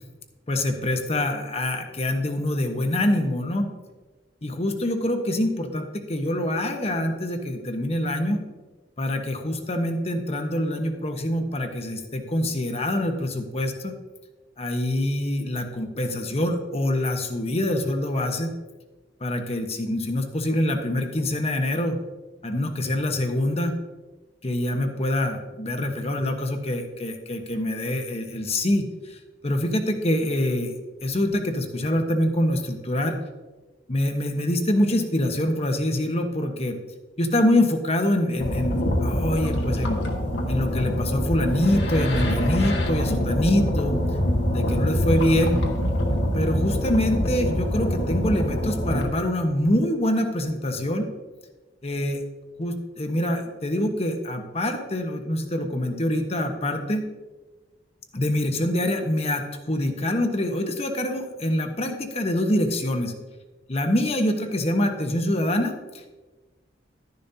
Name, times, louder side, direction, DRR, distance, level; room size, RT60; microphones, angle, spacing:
voice 1, 0.5-3.7 4.4-8.4 9.0-13.9 14.6-18.5 19.2-22.0 22.4-23.7 24.4-29.2 29.4-30.7 31.0-33.2 33.9-36.8 37.2-40.0 40.5-44.0 44.5-45.6 46.3-51.1 51.8-52.2 52.6-57.1 58.1-63.1 63.7-65.7, left 1 dB, 35° left, 5 dB, 1.1 m, -25 dB
sound 1, 38.4-49.0, equal, 70° left, 1.6 m, -25 dB
12.0 x 10.5 x 2.8 m, 1.2 s
head